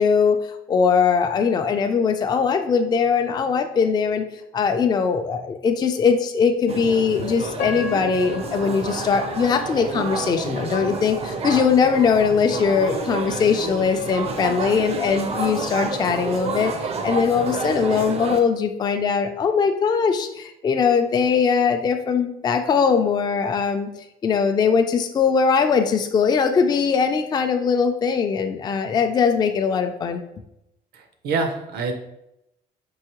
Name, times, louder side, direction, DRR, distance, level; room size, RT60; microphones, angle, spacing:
voice 1, 0.0-4.2 4.5-23.9 24.2-30.2, left 6 dB, 25° left, 6 dB, 0.3 m, -21 dB
sound 1, 6.7-18.4, right 4 dB, 35° right, 0.5 m, -29 dB
Piano, 7.6-10.6 11.2-11.3 11.9-12.2, left 4 dB, 70° left, 0.7 m, -35 dB
voice 2, 30.9-31.9, right 4 dB, 70° right, 6 dB, 0.7 m, -26 dB
4.6 x 2.7 x 2.9 m, 0.83 s
cardioid pair, 110°, 17 cm